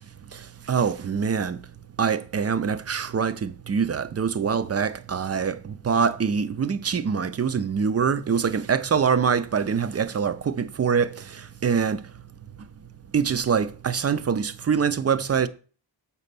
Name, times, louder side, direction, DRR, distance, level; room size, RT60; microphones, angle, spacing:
voice 1, 0.7-1.6 2.0-11.1 11.6-12.0 13.1-15.5, right 6 dB, 35° right, 0.4 m, -24 dB
6.8 x 4.2 x 6.6 m
wide cardioid pair, 155°, 47 cm